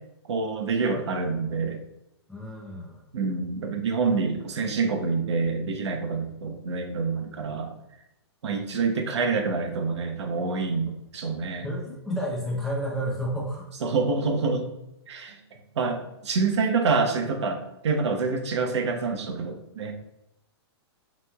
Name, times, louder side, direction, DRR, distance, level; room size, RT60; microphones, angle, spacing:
voice 1, 0.3-1.8 3.1-7.7 8.4-11.7 13.8-14.6 15.1-15.4 15.8-19.9, right 4 dB, 85° right, 4 dB, 0.6 m, -27 dB
voice 2, 2.3-3.0 11.6-13.7, equal, ahead, -4 dB, 0.6 m, -31 dB
3.0 x 2.9 x 2.2 m, 0.85 s
hypercardioid pair, 145°, 14 cm